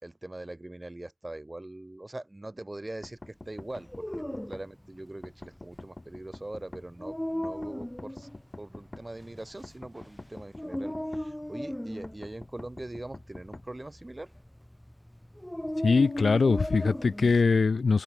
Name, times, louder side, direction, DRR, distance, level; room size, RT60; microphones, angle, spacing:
voice 1, 0.0-8.3 8.6-14.3, right 1 dB, 30° right, 5.3 m, -42 dB
sound 1, 3.0-4.7 5.2-6.9 7.4-9.1 9.6-11.3 12.0-13.7, left 2 dB, 40° left, 5.5 m, -45 dB
Dog, 3.7-17.4, equal, 10° left, 6.5 m, -38 dB
voice 2, 15.8-18.0, left 4 dB, 85° left, 1.2 m, -22 dB
wide cardioid pair, 60°, 0 cm